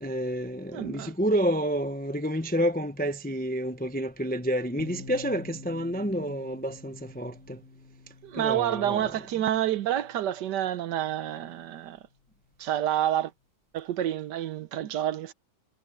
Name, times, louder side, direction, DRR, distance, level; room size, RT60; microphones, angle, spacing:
voice 1, 0.0-7.6 8.3-9.1, equal, 10° left, 0.4 m, -29 dB
voice 2, 0.7-1.1 8.2-12.0 12.6-13.3 13.7-15.3, right 11 dB, 65° right, 1.2 m, -28 dB
sound 1, 4.8-12.5, left 2 dB, 40° right, 3.5 m, -49 dB
omnidirectional pair, 2.3 m